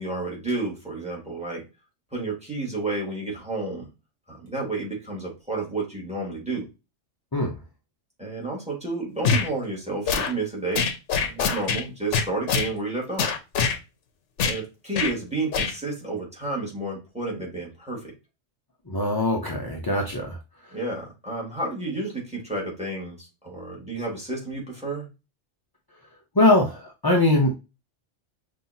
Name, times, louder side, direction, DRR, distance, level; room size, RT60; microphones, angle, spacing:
voice 1, 0.0-1.6 2.1-3.9 4.3-6.7 8.2-10.9 11.2-13.3 14.4-18.1 20.7-25.1, right 2 dB, 5° right, -1 dB, 1.7 m, -31 dB
sound 1, 9.2-9.5 10.1-10.3 10.7-11.8 12.1-12.7 13.2-13.8 14.4-14.6 14.9-15.1 15.5-15.7, left 6 dB, 75° left, 0.9 m, -24 dB
voice 2, 18.9-20.4 26.3-27.5, left 2 dB, 30° left, 0 dB, 0.4 m, -21 dB
5.5 x 2.7 x 2.7 m, 0.28 s
omnidirectional pair, 1.2 m